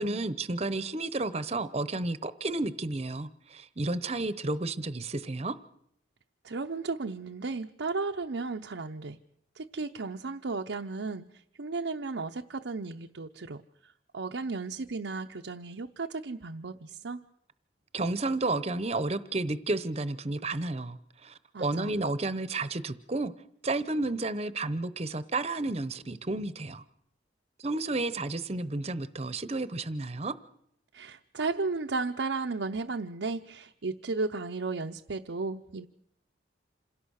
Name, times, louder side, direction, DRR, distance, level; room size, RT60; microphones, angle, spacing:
voice 1, 0.0-5.6 17.9-23.3 23.6-26.8 27.6-30.3, right 2 dB, 35° right, 0.9 m, -31 dB
voice 2, 6.4-9.2 9.6-11.3 11.6-13.6 14.1-17.2 21.5-22.0 30.9-35.9, right 3 dB, 85° right, 0.7 m, -34 dB
27.0 x 17.0 x 6.5 m
head